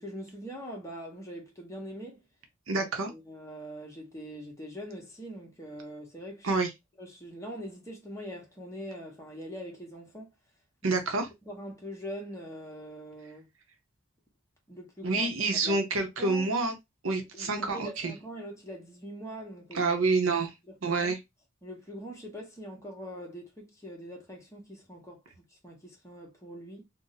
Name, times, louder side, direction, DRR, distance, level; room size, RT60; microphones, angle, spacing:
voice 1, 0.0-2.2 2.7-6.5 7.0-10.3 10.8-11.0 11.5-13.5 14.7-15.3 15.6-16.5 17.1-20.0 20.7-21.2 21.6-26.8, equal, 15° left, 0.9 m, -43 dB
voice 2, 2.7-3.1 6.4-6.7 10.8-11.3 15.0-16.7 17.0-18.1 19.7-20.5 20.8-21.2, right 3 dB, 65° right, 0.7 m, -27 dB
2.6 x 2.1 x 3.9 m
head